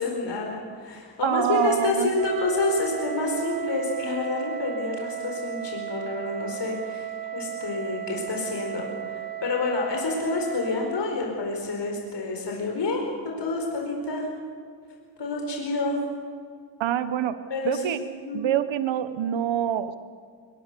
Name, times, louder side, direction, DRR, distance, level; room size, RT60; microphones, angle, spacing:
voice 1, 0.0-14.3 15.2-16.0 17.5-18.4, left 3 dB, 65° left, 0 dB, 4.8 m, -28 dB
voice 2, 1.2-2.1 16.8-17.4 17.6-18.0 18.3-20.0, right 10 dB, 85° right, 12 dB, 1.0 m, -25 dB
Wind instrument woodwind instrument, 2.1-11.0, right 13 dB, 50° right, 1.9 m, -35 dB
23.0 x 22.0 x 6.9 m, 2.2 s
cardioid pair, 80°, 44 cm